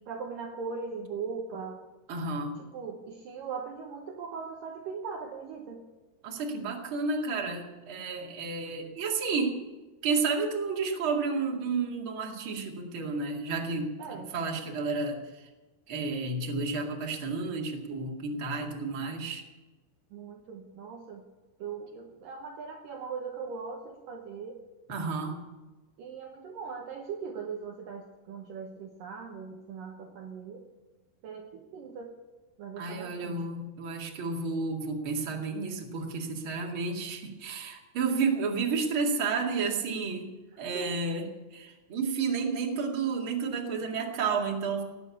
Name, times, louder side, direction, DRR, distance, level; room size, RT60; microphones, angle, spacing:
voice 1, 0.1-1.8 2.6-5.9 14.0-14.3 20.1-21.3 21.6-24.6 26.0-30.7 31.2-32.1 32.6-33.4 40.5-40.9, right 5 dB, 65° right, 1 dB, 2.5 m, -40 dB
voice 2, 2.1-2.6 6.2-9.6 10.0-15.5 15.9-19.4 24.9-25.4 32.8-40.3 40.6-44.8, right 4 dB, 40° right, 0 dB, 2.4 m, -31 dB
18.5 x 8.2 x 8.5 m, 1.2 s
omnidirectional pair, 4.7 m